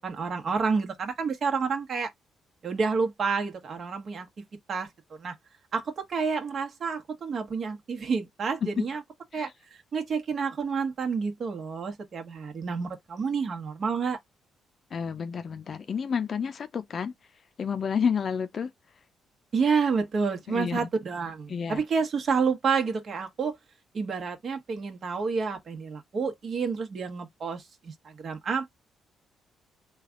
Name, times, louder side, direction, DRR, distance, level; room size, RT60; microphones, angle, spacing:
voice 1, 0.0-2.1 2.6-4.3 4.7-4.9 5.2-5.3 5.7-9.0 9.3-9.5 9.9-14.2 19.5-23.5 23.9-28.7, right 5 dB, 50° right, 1.2 m, -29 dB
voice 2, 14.9-17.1 17.6-18.7 20.5-20.9 21.5-21.8, left 6 dB, 50° left, 0.5 m, -30 dB
3.3 x 2.4 x 3.7 m
cardioid pair, 90°, 0 cm